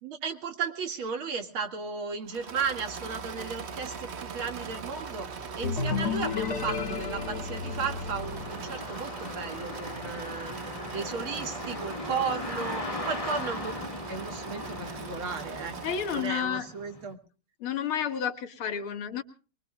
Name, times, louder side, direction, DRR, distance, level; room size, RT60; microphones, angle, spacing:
voice 1, 0.0-5.3 5.6-10.5 10.9-15.8 16.1-17.2, right 5 dB, 75° right, 6 dB, 2.8 m, -35 dB
Engine / Mechanisms, 2.3-16.5, right 5 dB, 45° right, 0.9 m, -41 dB
sound 1, 3.7-3.8 4.3-17.1, left 2 dB, 15° left, 1.6 m, -40 dB
sound 2, 5.6-9.3, left 5 dB, 50° left, 2.1 m, -32 dB
voice 2, 15.8-16.7 17.6-19.2, left 8 dB, 90° left, 6 dB, 2.5 m, -31 dB
24.0 x 22.5 x 2.3 m, 0.38 s
omnidirectional pair, 2.3 m